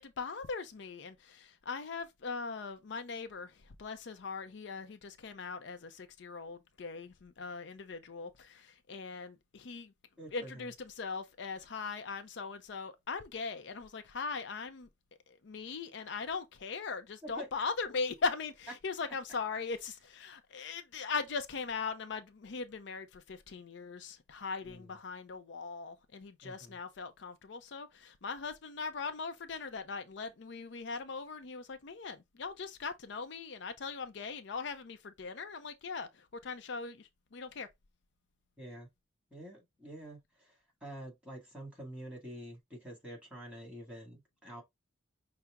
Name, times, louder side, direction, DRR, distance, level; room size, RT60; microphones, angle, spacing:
voice 1, 0.0-9.9 10.3-14.9 15.3-37.7, left 4 dB, 65° left, 0.5 m, -40 dB
voice 2, 10.2-10.7 17.2-17.5 24.6-24.9 26.4-26.8 38.6-38.9 39.3-40.5 40.8-44.6, right 1 dB, 5° right, 1.9 m, -47 dB
5.7 x 2.0 x 3.5 m
head